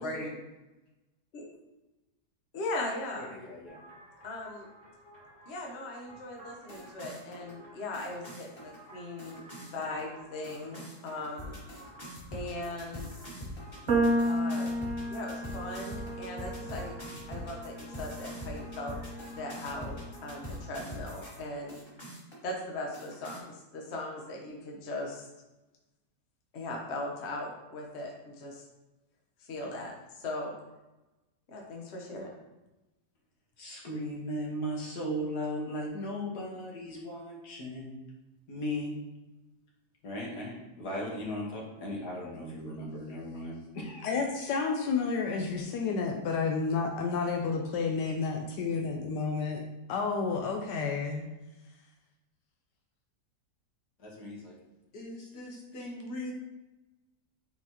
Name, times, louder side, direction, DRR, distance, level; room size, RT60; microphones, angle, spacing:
voice 1, 0.0-0.3 3.1-3.8 33.6-38.0 38.5-38.9 40.0-44.1 54.0-54.5 54.9-56.3, equal, 70° left, -2 dB, 1.9 m, -37 dB
voice 2, 2.5-3.3 4.2-4.7 5.5-9.4 9.7-11.6 12.3-13.1 14.2-14.7 15.1-17.0 17.3-19.0 19.3-20.0 20.2-21.8 22.4-25.2 26.5-28.6 29.5-30.6 31.5-32.3, left 2 dB, 45° left, 0 dB, 1.2 m, -39 dB
sound 1, 3.7-21.4 21.7-22.5 22.9-23.4, equal, 15° left, 1.5 m, -45 dB
sound 2, 13.9-20.2, right 1 dB, 55° right, 1.2 m, -33 dB
voice 3, 44.0-49.6 49.9-51.3, left 4 dB, 85° left, 2 dB, 1.3 m, -30 dB
8.6 x 3.9 x 2.9 m, 1.0 s
omnidirectional pair, 1.8 m